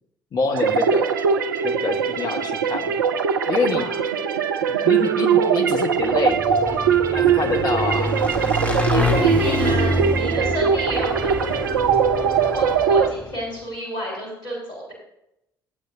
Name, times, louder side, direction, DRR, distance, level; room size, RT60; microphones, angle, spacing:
voice 1, 0.3-1.1 1.6-2.9 3.5-3.9 4.7-6.4 7.1-8.1 9.4-9.8, left 3 dB, 40° left, 5 dB, 1.2 m, -26 dB
sound 1, 0.5-13.1, right 7 dB, 75° right, 0.5 m, -21 dB
voice 2, 3.7-4.1 8.9-11.8 12.4-14.9, equal, 75° left, -3 dB, 3.6 m, -31 dB
Motorcycle / Engine, 6.1-13.4, left 1 dB, 15° left, 1.9 m, -27 dB
14.5 x 8.2 x 2.7 m, 0.83 s
figure-of-eight pair, 50°, 11 cm